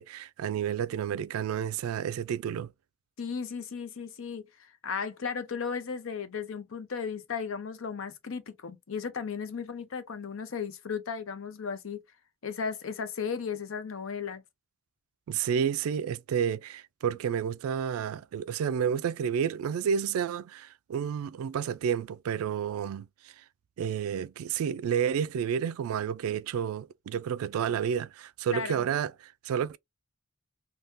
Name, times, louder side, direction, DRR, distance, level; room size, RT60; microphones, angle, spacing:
voice 1, 0.0-2.7 15.3-23.3 23.8-29.8, right 8 dB, 90° right, 0.3 m, -30 dB
voice 2, 3.2-12.0 12.4-14.4 28.5-28.9, left 6 dB, 65° left, 0.6 m, -35 dB
3.5 x 2.2 x 2.5 m
head